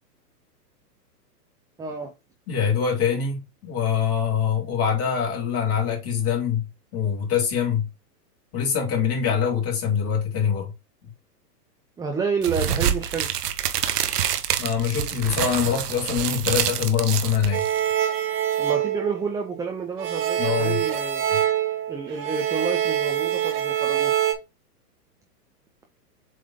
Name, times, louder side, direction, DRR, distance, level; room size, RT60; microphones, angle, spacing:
voice 1, 1.8-2.1 12.0-13.3 18.6-21.3 21.9-24.1, right 5 dB, 5° right, 0.6 m, -29 dB
voice 2, 2.5-7.9 8.5-10.7 11.0-11.1 14.6-17.6 20.4-20.8, left 7 dB, 30° left, 2.6 m, -24 dB
sound 1, 12.4-17.9, right 9 dB, 70° right, 1.2 m, -26 dB
sound 2, 17.5-19.7 20.0-24.3, right 11 dB, 25° right, 1.4 m, -25 dB
7.7 x 3.3 x 3.7 m
hypercardioid pair, 120°, 48 cm